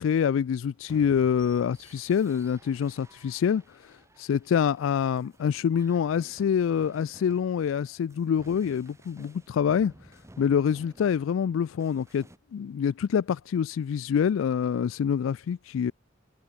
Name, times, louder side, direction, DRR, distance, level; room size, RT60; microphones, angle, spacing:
voice 1, 0.0-9.9 10.4-12.3 12.5-15.9, left 7 dB, 85° left, 0.3 m, -26 dB
sound 1, 0.9-12.4, right 1 dB, 15° right, 2.4 m, -54 dB
head